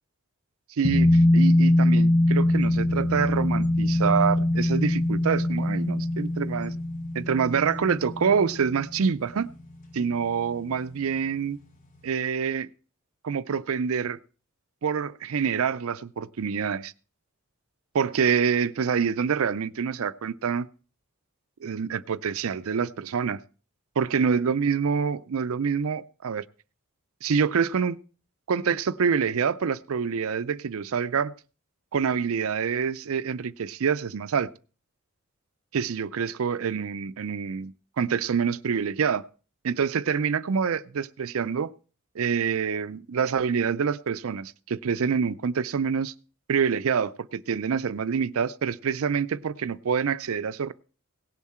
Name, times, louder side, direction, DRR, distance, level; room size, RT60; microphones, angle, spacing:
sound 1, 0.8-10.0 10.3-10.4, left 1 dB, 35° left, 1.0 m, -23 dB
voice 1, 0.8-6.7 7.2-9.5 9.9-11.6 12.0-12.7 13.2-14.2 14.8-16.9 17.9-20.7 21.6-23.4 24.0-26.4 27.2-28.0 28.5-31.3 31.9-34.5 35.7-39.2 39.6-41.7 42.2-46.1 46.5-50.7, right 6 dB, 75° right, 0.5 m, -26 dB
17.0 x 7.3 x 4.3 m
head